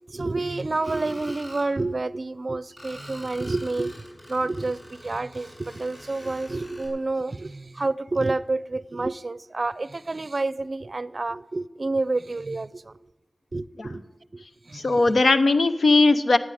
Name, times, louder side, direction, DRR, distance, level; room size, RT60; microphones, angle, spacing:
voice 1, 0.1-3.9 4.3-12.9 13.5-14.0 14.3-15.0, right 2 dB, 50° right, 0.5 m, -29 dB
Screech, 0.8-1.7 2.8-6.9, equal, 50° left, 7.2 m, -45 dB
voice 2, 14.7-16.4, left 3 dB, 90° left, 0.8 m, -19 dB
14.5 x 8.8 x 9.3 m
wide cardioid pair, 80°, 0 cm